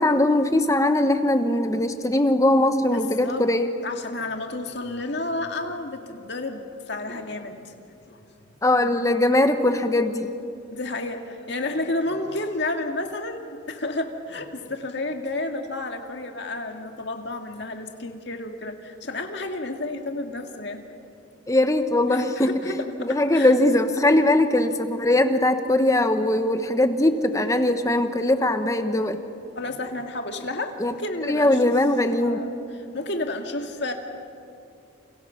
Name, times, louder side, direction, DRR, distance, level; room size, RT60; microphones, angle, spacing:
voice 1, 0.0-3.7 8.6-10.3 21.5-22.7 23.0-29.2 30.8-30.9 31.2-32.4, left 1 dB, 15° left, 8 dB, 1.2 m, -21 dB
voice 2, 2.9-3.5 3.8-8.2 10.7-20.8 22.1-23.5 29.5-31.7 32.2-32.5 32.9-33.9, left 2 dB, 60° left, 4 dB, 2.1 m, -31 dB
29.5 x 29.0 x 5.9 m, 2.6 s
head